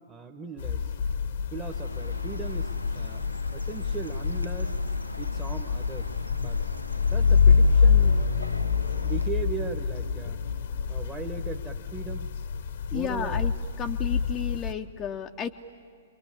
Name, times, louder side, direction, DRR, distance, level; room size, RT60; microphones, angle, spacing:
voice 1, 0.1-0.9 1.5-3.3 3.5-4.8 5.2-6.1 6.4-6.6 7.1-8.2 9.0-10.4 10.9-12.3 12.9-13.4, right 5 dB, 10° right, 2 dB, 1.1 m, -38 dB
sound 1, 0.6-14.7, left 5 dB, 55° left, 1.0 m, -26 dB
Chirp tweet, 1.5-9.3, equal, 90° left, 0.7 m, -41 dB
voice 2, 12.9-13.5 13.8-15.5, left 9 dB, 20° left, 4 dB, 0.7 m, -32 dB
28.0 x 23.0 x 8.8 m, 2.1 s
figure-of-eight pair, 110°, 0 cm